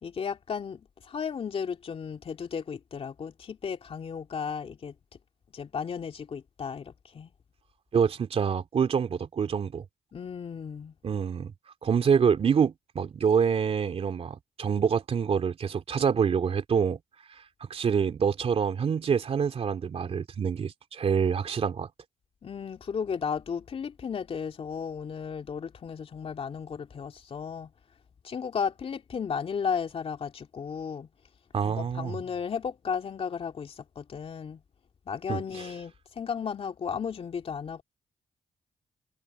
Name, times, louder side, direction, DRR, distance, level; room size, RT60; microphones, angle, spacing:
voice 1, 0.0-4.9 5.5-7.3 10.1-10.9 22.4-27.7 28.2-31.1 31.6-34.6 35.1-37.8, left 6 dB, 55° left, 2.6 m, -34 dB
voice 2, 7.9-9.8 11.0-11.5 11.8-17.0 17.7-21.9 31.5-32.2 35.3-35.7, right 7 dB, 55° right, 2.8 m, -26 dB
supercardioid pair, 60°, 12 cm